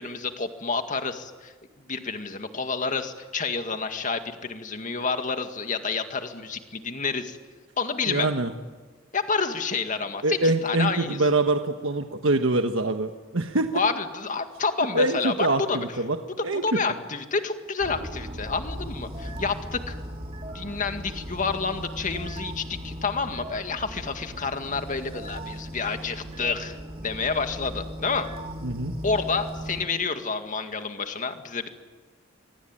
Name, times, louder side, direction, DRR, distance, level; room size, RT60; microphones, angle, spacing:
voice 1, 0.0-1.5 1.9-7.4 7.8-8.3 9.1-11.2 13.7-15.9 16.6-20.0 20.5-26.8 27.0-28.3 29.0-31.7, left 4 dB, 40° left, 7 dB, 2.0 m, -29 dB
voice 2, 8.1-8.5 10.2-13.7 14.9-16.2 16.4-16.6 28.6-28.9, right 2 dB, 75° right, 6 dB, 1.3 m, -24 dB
sound 1, 17.8-29.9, equal, 30° right, 3.1 m, -37 dB
24.5 x 24.0 x 9.0 m, 1.4 s
head